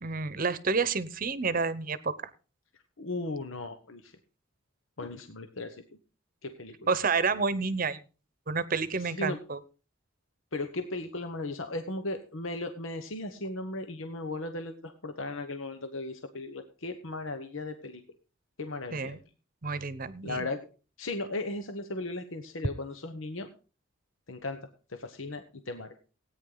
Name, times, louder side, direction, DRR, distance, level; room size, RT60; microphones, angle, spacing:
voice 1, 0.0-2.1 6.9-8.0 8.5-9.6 18.9-19.2 19.6-20.5, right 4 dB, 45° right, 15 dB, 0.9 m, -29 dB
voice 2, 3.0-4.1 5.0-5.8 6.4-6.7 9.0-9.4 10.5-18.0 18.6-19.2 20.2-20.6 21.0-23.5 24.3-24.6 24.9-25.9, left 2 dB, 75° left, 7 dB, 1.1 m, -36 dB
17.0 x 9.4 x 3.9 m, 0.35 s
head